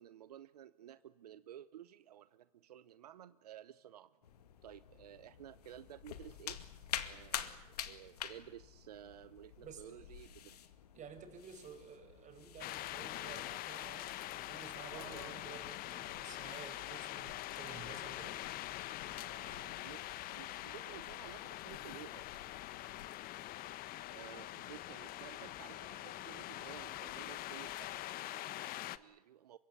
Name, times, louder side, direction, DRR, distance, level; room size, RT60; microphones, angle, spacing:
voice 1, 0.0-4.2 4.6-6.6 6.9-10.3 14.9-15.4 19.2-22.3 24.1-29.6, right 11 dB, 85° right, 15 dB, 0.8 m, -54 dB
sound 1, 4.2-23.1, left 10 dB, 85° left, 2.1 m, -50 dB
voice 2, 9.6-10.0 10.9-18.4 24.5-24.6, right 6 dB, 40° right, 7 dB, 6.2 m, -53 dB
sound 2, 12.6-29.0, left 15 dB, 50° left, 1.3 m, -44 dB
25.0 x 23.5 x 8.4 m, 1.1 s
hypercardioid pair, 90°, 20 cm